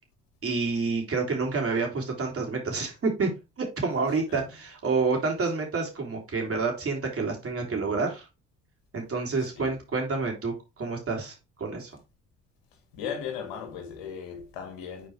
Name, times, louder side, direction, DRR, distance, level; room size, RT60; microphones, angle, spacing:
voice 1, 0.4-3.3 3.6-8.3 8.9-11.9, right 4 dB, 40° right, 3.4 m, -28 dB
voice 2, 4.1-4.4 9.4-9.7 12.7-15.1, left 7 dB, 85° left, 1.8 m, -38 dB
6.5 x 4.5 x 3.4 m
supercardioid pair, 65°, 33 cm